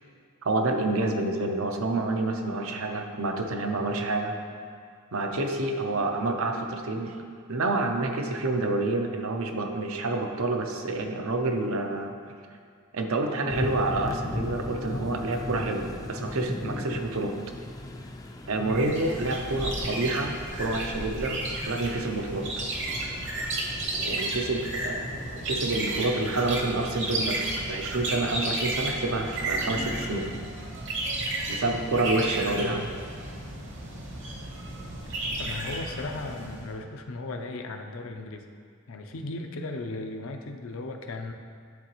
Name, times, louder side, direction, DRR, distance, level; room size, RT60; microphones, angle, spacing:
voice 1, 0.4-4.4 5.1-7.2 7.5-12.1 12.9-17.4 18.5-20.3 20.6-22.5 24.0-30.3 31.5-32.8, right 2 dB, 80° right, 4 dB, 0.6 m, -28 dB
sound 1, 13.5-30.4, left 1 dB, 15° left, 0.3 m, -39 dB
sound 2, 18.7-36.7, right 1 dB, 60° right, 1.0 m, -33 dB
voice 2, 35.4-38.4 38.9-41.3, left 2 dB, 75° left, 5 dB, 0.5 m, -36 dB
10.5 x 3.9 x 3.0 m, 2.1 s
head